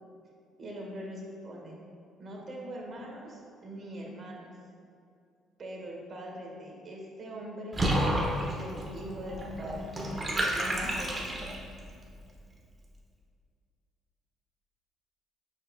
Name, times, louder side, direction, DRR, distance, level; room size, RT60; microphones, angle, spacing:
voice 1, 0.6-1.8 2.2-4.5 5.6-7.8 8.4-9.9 10.3-11.2, equal, 45° right, -1 dB, 1.3 m, -42 dB
Water / Bathtub (filling or washing), 7.7-11.8, right 1 dB, 25° right, 1.0 m, -31 dB
5.6 x 4.9 x 3.6 m, 2.3 s
cardioid pair, 105°, 0 cm